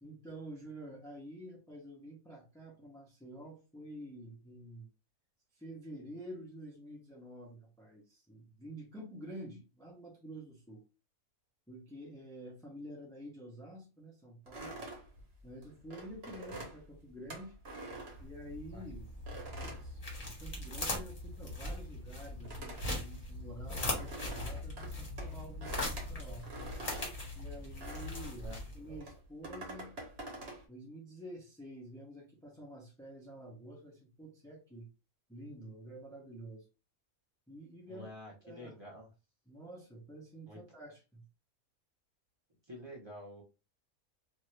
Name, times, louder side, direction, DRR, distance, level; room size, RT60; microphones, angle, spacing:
voice 1, 0.0-4.9 5.5-10.8 11.7-14.8 15.4-17.6 18.2-19.1 19.6-26.5 27.3-30.0 30.7-34.9 35.3-36.7 37.5-38.1 38.4-38.8 39.5-41.2, right 1 dB, 5° left, -3 dB, 0.5 m, -49 dB
sound 1, 14.5-18.8 19.3-20.8 21.0-28.4 29.0-30.6, right 2 dB, 45° right, 1.2 m, -47 dB
sound 2, 18.0-29.0, left 1 dB, 30° left, 1.1 m, -40 dB
voice 2, 37.9-39.1 40.5-40.6 42.7-43.4, equal, 20° right, -3 dB, 0.9 m, -48 dB
2.7 x 2.5 x 3.1 m, 0.29 s
omnidirectional pair, 1.5 m